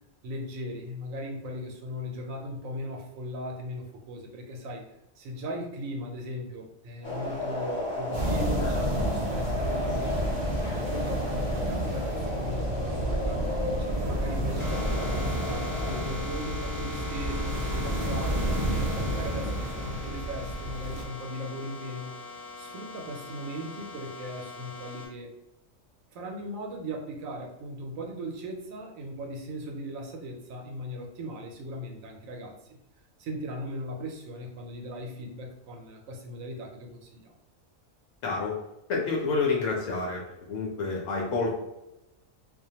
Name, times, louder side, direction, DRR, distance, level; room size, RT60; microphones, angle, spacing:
voice 1, 0.2-4.8 5.2-10.2 10.6-13.4 13.8-18.6 19.0-22.1 22.6-25.3 26.1-32.5 33.2-37.3, equal, 85° right, 2 dB, 1.0 m, -38 dB
sound 1, 7.0-16.0, left 2 dB, 35° left, 0.5 m, -34 dB
sound 2, 8.1-21.0, right 1 dB, 65° right, 0.4 m, -30 dB
sound 3, 14.6-25.1, left 3 dB, ahead, 0.8 m, -39 dB
voice 2, 38.2-38.5 38.9-40.2 40.5-41.6, left 4 dB, 75° left, -2 dB, 1.0 m, -28 dB
2.4 x 2.1 x 2.8 m, 0.91 s
omnidirectional pair, 1.4 m